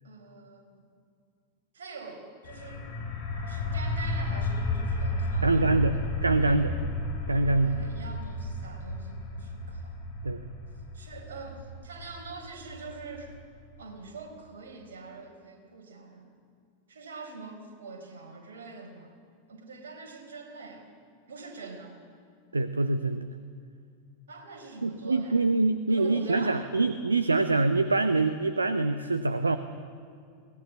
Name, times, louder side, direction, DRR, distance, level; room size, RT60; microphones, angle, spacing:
voice 1, 0.0-0.9 1.7-2.9 3.4-5.9 6.4-6.6 7.4-10.0 10.9-13.3 13.8-16.3 16.9-19.2 19.5-20.9 21.3-22.0 24.3-25.4 25.9-26.7, right 3 dB, 65° right, 3 dB, 4.2 m, -44 dB
sound 1, 2.4-13.9, left 1 dB, 50° left, 5.8 m, -33 dB
voice 2, 5.4-6.8 7.3-7.8 10.2-10.5 22.5-23.3 24.8-29.6, right 2 dB, 80° right, 11 dB, 0.8 m, -25 dB
22.0 x 18.0 x 8.3 m, 2.3 s
figure-of-eight pair, 90°, 0 cm